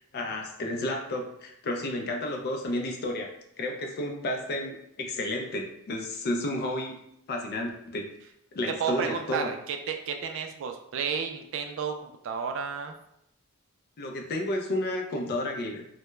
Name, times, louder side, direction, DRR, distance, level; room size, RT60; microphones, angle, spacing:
voice 1, 0.1-7.0 7.3-8.1 8.5-9.5 14.0-15.9, left 1 dB, 50° left, 2 dB, 0.4 m, -32 dB
voice 2, 8.8-12.9, right 6 dB, 65° right, 5 dB, 0.3 m, -32 dB
2.2 x 2.0 x 3.0 m, 0.77 s
head